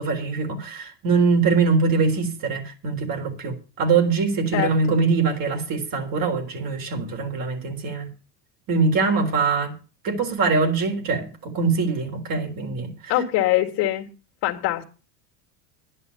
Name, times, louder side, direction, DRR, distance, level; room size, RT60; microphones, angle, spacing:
voice 1, 0.0-8.1 8.7-9.8 10.0-13.1, right 4 dB, 45° right, 3.8 m, -23 dB
voice 2, 4.5-5.0 13.1-14.1 14.4-14.8, left 14 dB, 55° left, 2.2 m, -23 dB
11.0 x 10.5 x 7.0 m
supercardioid pair, 130°, 47 cm